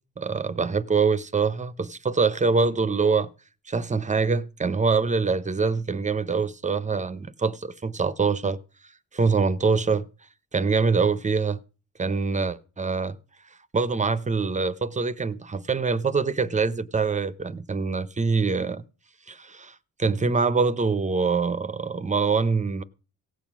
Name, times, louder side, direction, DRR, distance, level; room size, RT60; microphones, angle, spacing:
voice 1, 0.2-3.3 3.7-8.6 9.1-10.1 10.5-11.6 12.0-13.2 13.7-18.8 19.3-22.8, right 4 dB, 25° right, 0.8 m, -24 dB
17.0 x 7.2 x 6.0 m
cardioid pair, 90°, 30 cm